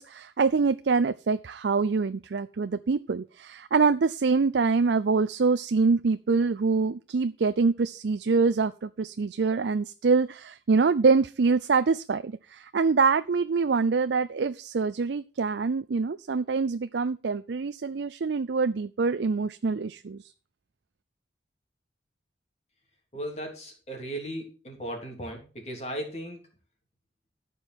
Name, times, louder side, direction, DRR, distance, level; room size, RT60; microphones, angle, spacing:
voice 1, 0.0-20.3, right 4 dB, 70° right, 12 dB, 0.5 m, -25 dB
voice 2, 23.1-26.4, right 1 dB, 35° left, 1 dB, 3.3 m, -36 dB
14.0 x 5.4 x 6.2 m, 0.35 s
head